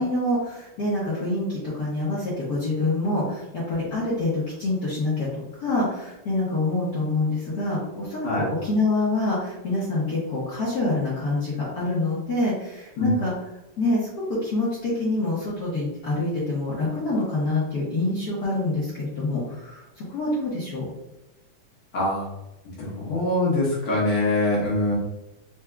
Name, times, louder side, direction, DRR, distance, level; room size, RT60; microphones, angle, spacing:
voice 1, 0.0-5.3 5.6-8.3 8.6-13.3 13.8-20.8, left 2 dB, 55° left, -8 dB, 1.2 m, -26 dB
voice 2, 21.9-22.3 22.8-25.0, left 1 dB, 75° left, -6 dB, 1.9 m, -23 dB
4.6 x 2.6 x 2.3 m, 0.92 s
omnidirectional pair, 2.4 m